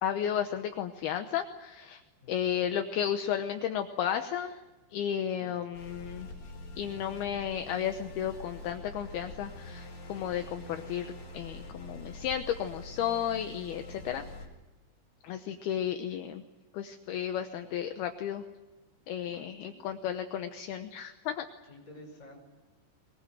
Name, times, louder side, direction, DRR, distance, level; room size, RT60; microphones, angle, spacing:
voice 1, 0.0-2.0 2.3-4.6 4.9-6.3 6.8-11.1 11.3-14.3 15.2-16.4 16.7-18.4 19.1-21.5, left 9 dB, 75° left, 7 dB, 2.7 m, -33 dB
voice 2, 2.2-2.7 5.4-5.5 14.1-14.2 19.2-19.3 19.6-19.7 21.7-22.4, left 1 dB, 15° left, -2 dB, 5.2 m, -51 dB
sound 1, 5.7-14.5, left 2 dB, 40° left, 5.6 m, -45 dB
23.0 x 21.5 x 9.1 m, 1.1 s
omnidirectional pair, 5.2 m